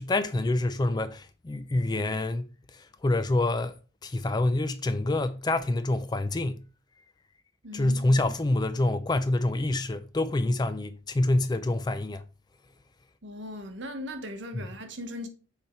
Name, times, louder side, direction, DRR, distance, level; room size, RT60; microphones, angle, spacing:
voice 1, 0.0-3.7 4.0-6.6 7.7-12.2, left 2 dB, 20° left, 0.3 m, -27 dB
voice 2, 7.6-8.0 13.2-15.3, left 1 dB, 65° right, 1.1 m, -38 dB
6.9 x 3.4 x 4.4 m
head